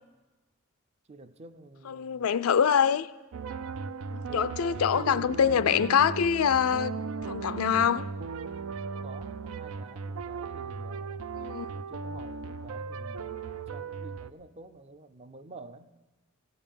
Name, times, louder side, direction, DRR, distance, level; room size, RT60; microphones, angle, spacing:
voice 1, 1.1-2.2 4.3-4.8 9.0-11.2 11.7-15.9, right 2 dB, 30° right, 0.5 m, -49 dB
voice 2, 1.8-3.1 4.1-6.9 7.3-8.0 11.3-11.7, left 8 dB, 90° left, 0.4 m, -25 dB
sound 1, 3.3-14.3, right 5 dB, 90° right, 0.4 m, -37 dB
15.5 x 5.5 x 8.7 m
head